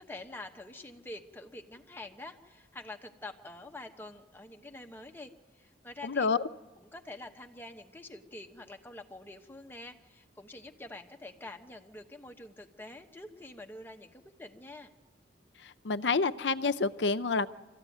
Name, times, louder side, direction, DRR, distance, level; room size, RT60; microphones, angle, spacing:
voice 1, 0.0-6.3 6.8-14.9, left 2 dB, 10° left, 4 dB, 1.1 m, -46 dB
voice 2, 6.0-6.4 15.6-17.5, left 4 dB, 85° left, 12 dB, 0.6 m, -28 dB
25.0 x 14.0 x 9.2 m, 1.3 s
head